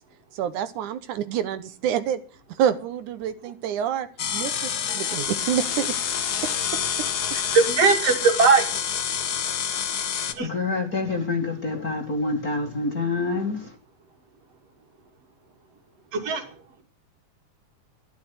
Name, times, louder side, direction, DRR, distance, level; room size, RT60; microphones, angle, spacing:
voice 1, 0.4-2.2 2.6-4.1 4.3-4.5 4.9-5.9, right 9 dB, 75° right, 2.4 m, -27 dB
sound 1, 4.2-10.3, left 8 dB, 65° left, 0.9 m, -27 dB
voice 2, 7.3-8.7 10.4-10.5 16.1-16.5, right 4 dB, 50° right, 3.5 m, -19 dB
voice 3, 10.3-13.8, left 3 dB, 30° left, 2.1 m, -27 dB
13.0 x 11.5 x 7.9 m
omnidirectional pair, 3.6 m